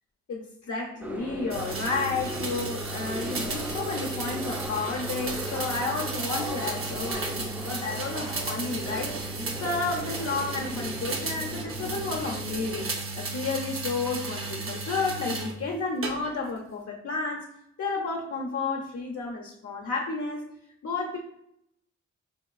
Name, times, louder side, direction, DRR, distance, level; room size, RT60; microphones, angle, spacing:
voice 1, 0.3-12.9 13.2-17.5 17.8-20.5 20.8-21.2, left 4 dB, 60° left, 0 dB, 0.6 m, -31 dB
sound 1, 1.0-12.9, equal, 5° right, 0.6 m, -38 dB
sound 2, 1.5-15.6 16.0-16.6, right 3 dB, 45° right, 0.7 m, -34 dB
4.7 x 2.3 x 2.3 m, 0.75 s
cardioid pair, 50°, 29 cm